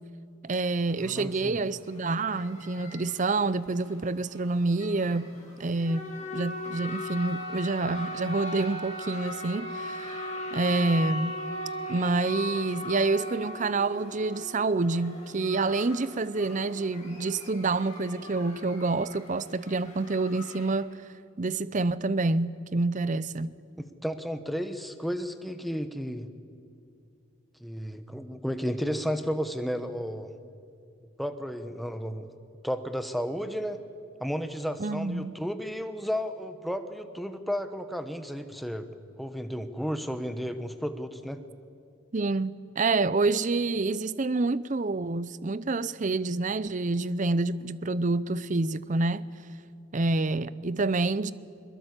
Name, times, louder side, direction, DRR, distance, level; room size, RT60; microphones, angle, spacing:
voice 1, 0.4-5.3 5.6-10.2 10.5-11.3 11.9-20.9 21.4-23.5 34.8-35.3 42.1-49.3 49.9-51.3, right 3 dB, 35° right, 0.6 m, -27 dB
sound 1, 0.9-20.7, left 1 dB, 35° left, 7.6 m, -39 dB
voice 2, 1.0-1.6 23.8-26.3 27.6-30.3 31.2-32.3 32.6-33.8 34.2-38.9 39.2-41.4, equal, ahead, 1.1 m, -33 dB
22.0 x 21.5 x 8.2 m
head